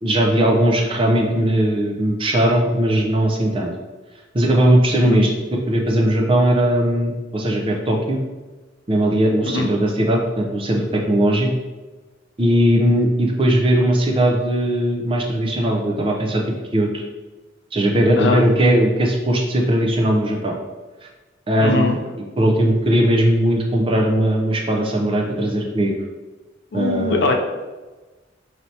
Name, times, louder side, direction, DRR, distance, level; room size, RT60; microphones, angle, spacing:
voice 1, 0.0-3.7 4.3-8.2 8.9-11.5 12.4-16.4 16.7-17.0 17.7-20.6 21.0-21.1 21.5-21.9 22.4-25.9 26.7-27.2, right 1 dB, 30° right, 1 dB, 0.5 m, -18 dB
voice 2, 21.6-22.0 26.7-27.3, left 3 dB, 60° left, 3 dB, 0.4 m, -21 dB
4.2 x 3.2 x 2.7 m, 1.2 s
head